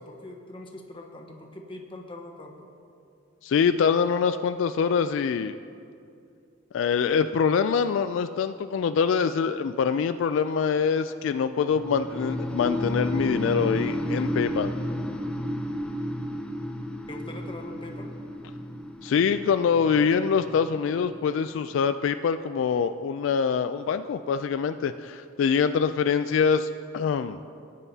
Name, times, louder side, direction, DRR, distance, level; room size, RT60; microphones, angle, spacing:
voice 1, 0.0-2.7 17.1-18.1, left 1 dB, 25° left, 2 dB, 1.1 m, -42 dB
voice 2, 3.4-5.6 6.7-14.7 19.0-27.4, left 6 dB, 75° left, 10 dB, 0.3 m, -24 dB
sound 1, 11.7-21.7, equal, 5° left, 0.5 m, -32 dB
20.0 x 9.1 x 2.8 m, 2.5 s
head